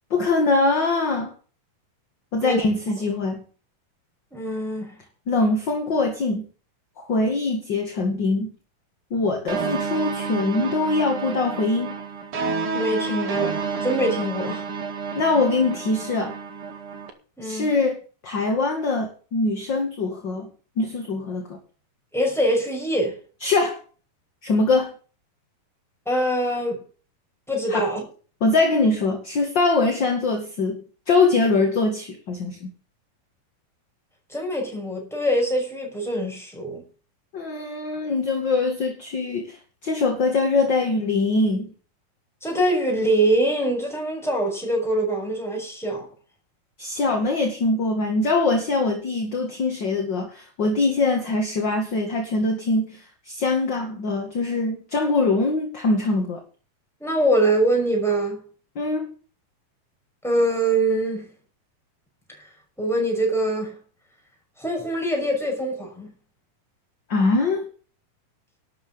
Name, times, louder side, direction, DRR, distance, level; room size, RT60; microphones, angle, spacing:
voice 1, 0.1-1.3 2.3-3.4 5.3-6.5 7.0-8.5 9.1-12.0 15.1-16.4 17.4-20.5 20.8-21.6 23.4-23.8 24.4-24.9 27.7-27.9 28.4-32.7 37.3-41.7 46.8-56.4 58.8-59.1 67.1-67.7, left 3 dB, 40° left, 2.2 m, -23 dB
voice 2, 4.3-5.0 12.7-14.7 17.4-17.7 22.1-23.2 26.1-26.8 27.5-28.1 34.3-36.8 42.4-46.1 57.0-58.4 60.2-61.3 62.3-62.4 62.8-63.8 64.6-66.1, right 1 dB, ahead, 5.7 m, -23 dB
sound 1, 9.5-17.1, right 5 dB, 45° right, 2.5 m, -30 dB
12.5 x 7.8 x 6.9 m
omnidirectional pair, 4.1 m